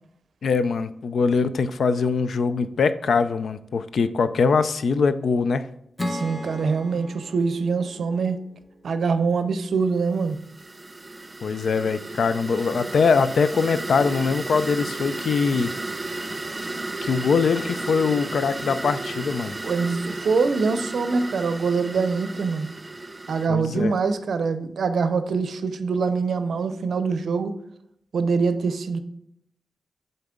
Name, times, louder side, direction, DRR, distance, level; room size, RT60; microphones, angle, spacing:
voice 1, 0.4-5.7 11.4-15.7 17.0-19.5 23.5-23.9, left 5 dB, 75° left, 13 dB, 0.4 m, -22 dB
Acoustic guitar / Strum, 6.0-9.4, left 1 dB, 20° left, 0.8 m, -36 dB
voice 2, 6.1-8.4 8.8-10.4 19.6-22.7 23.3-27.6 28.1-29.0, right 4 dB, 75° right, 11 dB, 0.5 m, -24 dB
sound 1, 10.1-23.5, right 2 dB, 30° right, 0.5 m, -34 dB
7.7 x 4.0 x 3.7 m, 0.76 s
cardioid pair, 60°, 0 cm